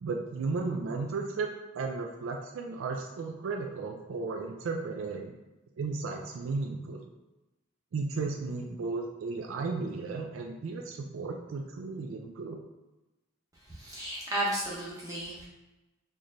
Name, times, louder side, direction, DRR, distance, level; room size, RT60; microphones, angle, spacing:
voice 1, 0.0-5.3 5.8-7.0 7.9-12.6, right 4 dB, 75° right, 2 dB, 0.4 m, -34 dB
voice 2, 13.7-15.5, right 1 dB, 15° right, -5 dB, 0.8 m, -33 dB
4.1 x 3.1 x 2.6 m, 1.0 s
head